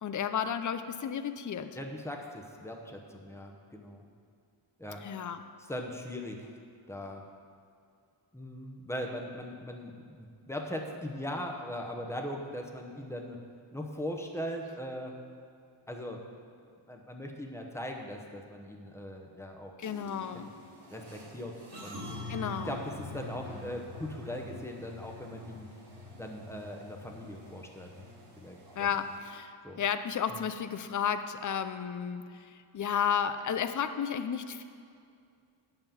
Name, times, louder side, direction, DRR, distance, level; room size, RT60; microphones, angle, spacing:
voice 1, 0.0-1.7 5.0-5.4 19.8-20.5 22.3-22.8 28.8-34.6, left 8 dB, 40° left, 10 dB, 0.5 m, -33 dB
voice 2, 1.7-4.0 4.8-5.0 5.7-6.5 6.9-7.2 8.3-13.4 13.7-15.1 15.9-16.2 16.9-19.7 20.3-20.4 20.9-21.5 21.8-22.2 22.7-25.7 26.2-27.9 28.4-28.9 29.6-29.8, equal, 5° left, 2 dB, 0.9 m, -40 dB
sound 1, 19.8-29.2, left 1 dB, 55° right, 2.1 m, -45 dB
9.0 x 5.8 x 7.0 m, 2.4 s
wide cardioid pair, 105°, 49 cm